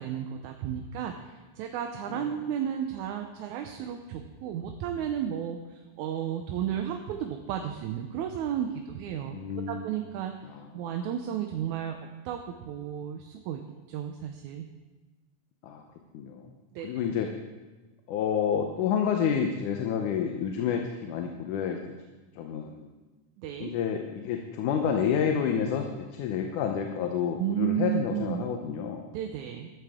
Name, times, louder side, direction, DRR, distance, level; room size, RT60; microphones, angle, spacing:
voice 1, 0.0-9.4 9.7-10.3 10.7-12.0 12.3-13.6 13.9-14.7 16.7-16.9 23.4-23.7 27.4-28.4 29.1-29.7, right 10 dB, 80° right, 5 dB, 2.1 m, -33 dB
voice 2, 9.3-9.9 10.5-10.6 15.6-15.8 16.1-16.5 16.8-17.3 18.1-21.8 22.3-22.9 23.6-29.0, left 7 dB, 90° left, 4 dB, 2.4 m, -29 dB
14.0 x 13.0 x 3.6 m, 1.2 s
omnidirectional pair, 3.5 m